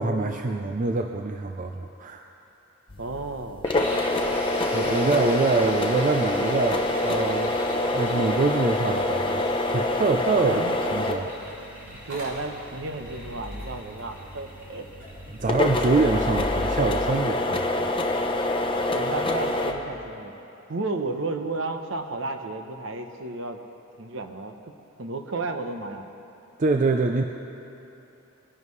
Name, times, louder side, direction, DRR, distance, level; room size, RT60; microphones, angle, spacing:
voice 1, 0.0-2.2 4.2-4.3 4.7-9.4 9.7-10.6 10.9-11.8 15.4-17.9 26.6-27.2, right 3 dB, 35° right, 4 dB, 0.4 m, -25 dB
sound 1, 2.9-19.7, left 2 dB, 25° left, 0.7 m, -27 dB
voice 2, 3.0-3.7 10.4-10.8 11.8-14.9 18.9-20.3 20.7-23.6 24.0-24.5 25.0-26.0, right 3 dB, 60° right, 5 dB, 0.9 m, -33 dB
sound 2, 3.6-19.2, equal, 5° right, 3.3 m, -42 dB
Motor vehicle (road) / Engine starting, 12.0-17.0, left 1 dB, 85° right, 3.5 m, -38 dB
21.0 x 11.0 x 3.2 m, 2.9 s
head